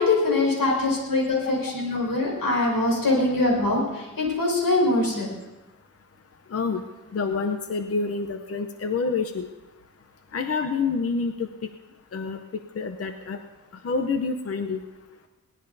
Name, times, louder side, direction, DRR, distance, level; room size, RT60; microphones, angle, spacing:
voice 1, 0.0-5.3, left 2 dB, 85° left, -1 dB, 5.2 m, -23 dB
voice 2, 7.1-9.5 10.3-11.3 12.1-12.4 12.8-13.4 13.8-14.8, left 4 dB, 45° left, 6 dB, 0.7 m, -27 dB
22.0 x 18.0 x 2.7 m, 1.1 s
wide cardioid pair, 155°, 33 cm